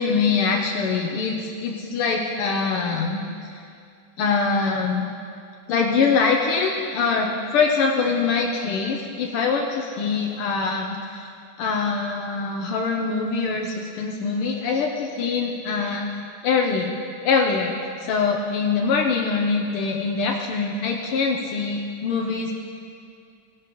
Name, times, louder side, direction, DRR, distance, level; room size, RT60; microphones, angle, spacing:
voice 1, 0.0-3.5 4.2-5.1 5.7-11.3 11.6-16.9 17.2-22.5, left 4 dB, 80° left, 0 dB, 1.7 m, -23 dB
17.0 x 11.0 x 3.0 m, 2.4 s
omnidirectional pair, 2.4 m